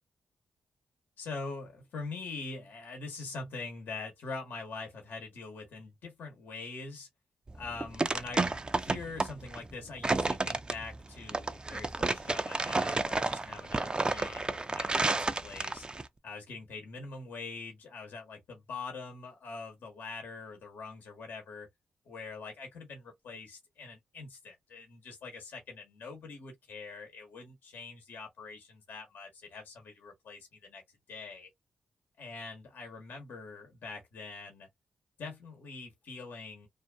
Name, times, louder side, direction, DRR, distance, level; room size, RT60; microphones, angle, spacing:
voice 1, 1.2-7.1 7.5-15.9 16.2-21.7 22.0-30.8 31.1-31.5 32.2-34.7 35.2-36.7, left 4 dB, 75° left, 1.0 m, -44 dB
sound 1, 7.5-16.1, right 3 dB, 30° right, 0.5 m, -31 dB
2.6 x 2.4 x 2.2 m
supercardioid pair, 45°, 3 cm